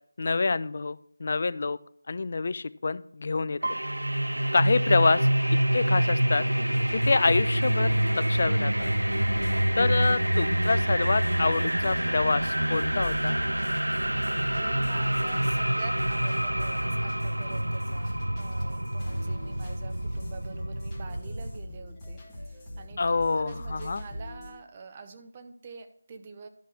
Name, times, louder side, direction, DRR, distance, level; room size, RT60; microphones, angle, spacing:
voice 1, 0.2-1.8 2.1-3.6 4.5-5.3 5.7-6.4 6.9-8.9 9.8-13.4 23.0-24.0, left 4 dB, 40° left, 16 dB, 0.4 m, -26 dB
Piano, 3.6-7.3 7.6-8.0 8.4-9.0 9.6-9.7 9.9-11.0 11.3-11.4, right 2 dB, 60° right, 0.9 m, -40 dB
sound 1, 3.6-21.6, right 1 dB, 75° right, 0.3 m, -27 dB
sound 2, 6.7-24.5, equal, 10° left, 1.8 m, -41 dB
voice 2, 14.2-26.5, right 4 dB, 20° right, 6 dB, 0.7 m, -46 dB
11.5 x 5.2 x 5.6 m, 0.63 s
figure-of-eight pair, 160°, 0 cm